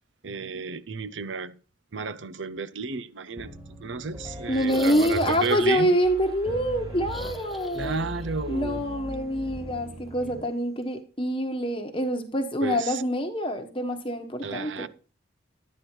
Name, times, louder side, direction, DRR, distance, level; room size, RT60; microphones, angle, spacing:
voice 1, 0.2-1.6 1.9-3.5 3.8-6.0 7.7-8.9 12.6-13.0 14.4-14.9, right 4 dB, 65° right, 0.6 m, -32 dB
Piano, 3.4-10.4, equal, 20° right, 2.0 m, -39 dB
voice 2, 4.5-8.0 8.5-14.9, equal, 25° left, 1.1 m, -26 dB
sound 1, 4.5-5.9 7.0-8.2 8.5-8.6 10.2-10.3, equal, ahead, 0.6 m, -39 dB
11.5 x 9.5 x 4.4 m
head